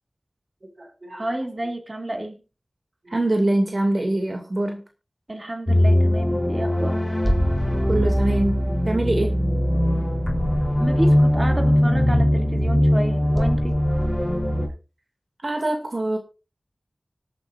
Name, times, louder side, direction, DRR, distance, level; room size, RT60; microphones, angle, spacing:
voice 1, 0.6-1.3 3.0-4.8 7.9-9.4 15.4-16.2, right 1 dB, 60° right, 3 dB, 2.4 m, -24 dB
voice 2, 1.2-2.4 5.3-7.0 10.8-13.8, right 1 dB, 40° right, 4 dB, 2.7 m, -30 dB
sound 1, 5.7-14.7, equal, 15° left, 3.6 m, -20 dB
25.5 x 8.7 x 2.6 m, 0.31 s
wide cardioid pair, 45°, 0 cm